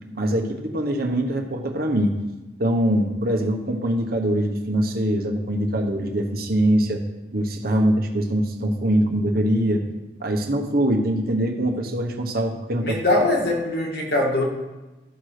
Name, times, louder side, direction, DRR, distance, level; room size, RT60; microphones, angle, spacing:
voice 1, 0.1-2.1 2.6-7.0 7.3-9.9 10.2-13.0, right 1 dB, 55° right, 2 dB, 1.2 m, -23 dB
voice 2, 12.8-14.4, left 2 dB, 60° left, -1 dB, 2.1 m, -22 dB
13.0 x 6.1 x 5.0 m, 1.1 s
head